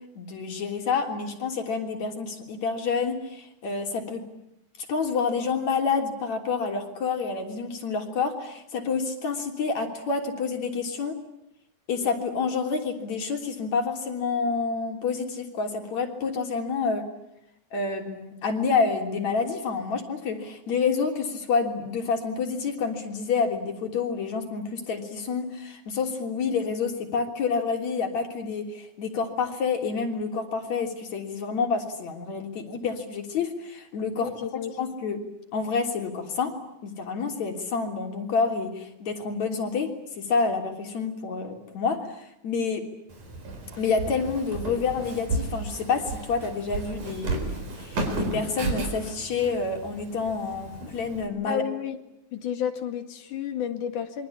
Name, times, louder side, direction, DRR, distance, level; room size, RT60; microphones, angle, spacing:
voice 1, 0.2-4.2 4.9-11.2 11.9-17.0 17.7-34.3 34.8-35.2 35.5-36.5 36.8-42.8 43.8-51.6, left 5 dB, 65° left, 4 dB, 4.6 m, -28 dB
voice 2, 34.2-34.7 51.5-52.0 52.3-54.3, left 8 dB, 85° left, 7 dB, 3.5 m, -31 dB
Walk footsteps, 43.1-51.3, right 3 dB, 85° right, 6.0 m, -33 dB
27.5 x 24.0 x 8.6 m, 0.86 s
omnidirectional pair, 3.5 m